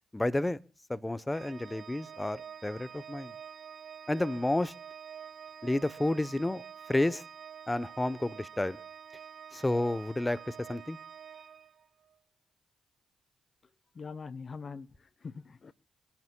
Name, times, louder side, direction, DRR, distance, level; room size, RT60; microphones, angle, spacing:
voice 1, 0.1-0.6 0.9-3.3 4.1-4.7 5.6-6.6 6.9-7.2 7.7-8.8 9.5-11.0, left 1 dB, 15° left, 0.8 m, -30 dB
Organ, 1.3-12.2, right 8 dB, 55° right, 0.8 m, -48 dB
voice 2, 13.9-15.7, left 5 dB, 45° left, 0.8 m, -43 dB
26.0 x 11.0 x 2.2 m
hypercardioid pair, 50°, 0 cm